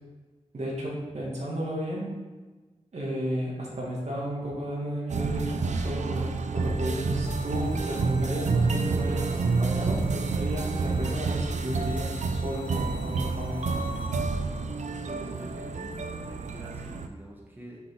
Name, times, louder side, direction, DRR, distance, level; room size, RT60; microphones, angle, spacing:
voice 1, 0.5-2.1 2.9-13.6, right 1 dB, 70° right, -4 dB, 2.0 m, -33 dB
sound 1, 5.1-17.1, right 4 dB, 85° right, 0.5 m, -29 dB
sound 2, 7.3-14.1, left 2 dB, 40° right, 2.0 m, -47 dB
voice 2, 15.0-17.8, equal, 15° right, -3 dB, 1.2 m, -44 dB
6.1 x 5.4 x 4.7 m, 1.3 s
wide cardioid pair, 125°, 12 cm